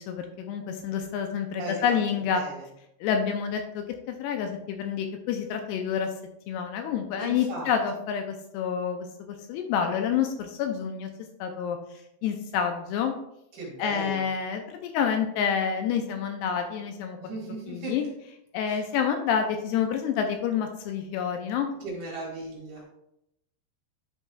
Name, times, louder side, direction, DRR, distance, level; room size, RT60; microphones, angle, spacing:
voice 1, 0.0-2.4 3.0-6.1 6.5-11.1 11.4-11.8 12.2-13.1 13.8-17.2 17.7-18.0 18.5-21.7, left 7 dB, 80° left, 5 dB, 2.5 m, -28 dB
voice 2, 2.3-2.7 7.2-7.7 13.5-14.2 17.2-17.9 18.6-18.8 21.8-22.8, right 2 dB, 55° right, -4 dB, 2.9 m, -37 dB
11.0 x 5.8 x 2.3 m, 0.80 s
omnidirectional pair, 5.0 m